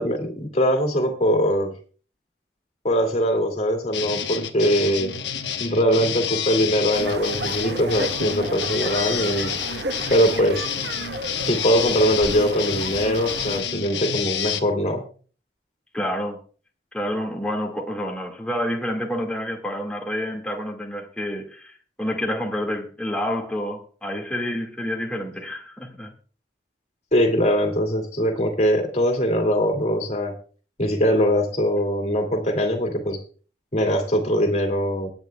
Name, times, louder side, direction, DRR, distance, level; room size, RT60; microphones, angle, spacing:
voice 1, 0.0-1.7 2.8-5.1 5.6-9.5 10.1-10.6 11.5-15.0 27.1-30.3 30.8-33.2 33.7-35.1, equal, 40° left, 2.5 m, -22 dB
sound 1, 3.9-14.6, left 8 dB, 85° left, 1.1 m, -29 dB
sound 2, 6.9-13.6, right 2 dB, 75° right, 1.2 m, -33 dB
voice 2, 15.9-16.4 16.9-21.7 22.0-26.1, equal, 5° left, 2.0 m, -28 dB
24.0 x 9.1 x 2.3 m
head